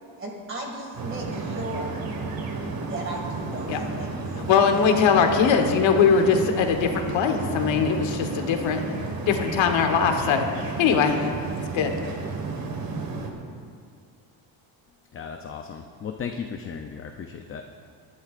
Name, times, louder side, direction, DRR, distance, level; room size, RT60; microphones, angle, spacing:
voice 1, 0.2-2.0 2.8-4.2, right 2 dB, 25° right, 0 dB, 2.2 m, -35 dB
sound 1, 0.9-13.3, right 3 dB, 45° right, 1.6 m, -32 dB
voice 2, 4.4-8.9 9.3-11.3 11.7-12.0, left 6 dB, 70° left, 4 dB, 1.4 m, -21 dB
voice 3, 15.1-17.7, left 6 dB, 30° left, 4 dB, 0.5 m, -36 dB
22.0 x 11.5 x 2.5 m, 2.2 s
cardioid pair, 155°, 48 cm